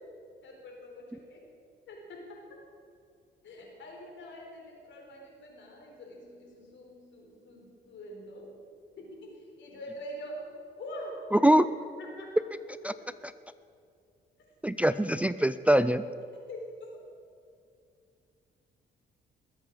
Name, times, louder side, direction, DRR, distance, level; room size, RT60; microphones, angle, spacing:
voice 1, 0.4-1.4 1.9-2.4 3.4-8.5 9.0-11.1 12.0-12.3 16.5-16.7, equal, 70° left, 1 dB, 4.3 m, -45 dB
voice 2, 11.3-11.7 12.8-12.9 13.2-13.3 14.6-16.0, right 1 dB, 5° right, 14 dB, 0.4 m, -23 dB
21.0 x 8.2 x 6.6 m, 2.4 s
cardioid pair, 90°, 20 cm